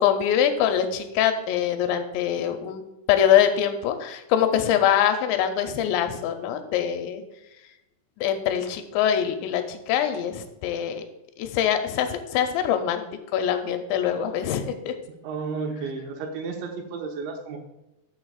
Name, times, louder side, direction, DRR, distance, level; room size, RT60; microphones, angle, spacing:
voice 1, 0.0-2.8 3.1-7.2 8.2-11.0 11.4-13.0 13.3-14.9, left 9 dB, 85° left, 7 dB, 2.9 m, -23 dB
voice 2, 15.1-17.6, right 4 dB, 80° right, 3 dB, 3.3 m, -32 dB
12.5 x 6.6 x 2.4 m, 0.94 s
omnidirectional pair, 5.1 m